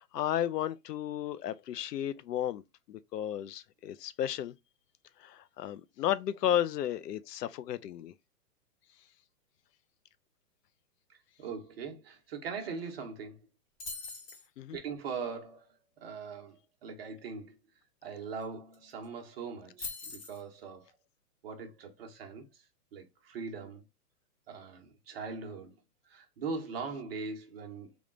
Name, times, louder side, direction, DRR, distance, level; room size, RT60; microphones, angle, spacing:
voice 1, 0.0-2.6 2.9-4.5 5.2-8.1 14.6-14.8, left 11 dB, 80° left, 0.6 m, -33 dB
voice 2, 11.1-13.4 14.7-15.7 16.0-17.5 18.0-20.9 21.4-22.5 22.9-23.8 24.5-25.7 26.1-27.9, right 5 dB, 40° right, 1.0 m, -41 dB
sound 1, 13.8-14.5 18.4-18.5 18.7-19.1 19.8-20.4, left 4 dB, 20° left, 0.8 m, -41 dB
3.6 x 2.4 x 3.7 m
hypercardioid pair, 160°, 48 cm